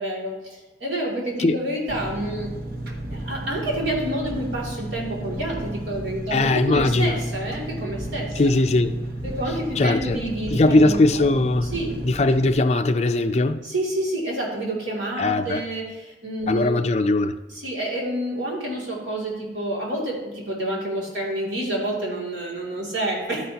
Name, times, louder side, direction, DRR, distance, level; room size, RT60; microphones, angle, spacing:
voice 1, 0.0-2.5 3.2-8.4 9.2-11.3 11.7-12.0 13.6-16.8 17.5-23.5, right 1 dB, 85° right, 2.7 m, -28 dB
Engine, 1.9-12.5, right 1 dB, 55° right, 1.0 m, -33 dB
voice 2, 6.3-7.2 8.4-9.0 9.8-10.2 10.5-11.7 12.0-13.6 15.2-15.6 16.5-17.3, left 2 dB, 35° left, 0.4 m, -20 dB
11.5 x 9.6 x 2.9 m
head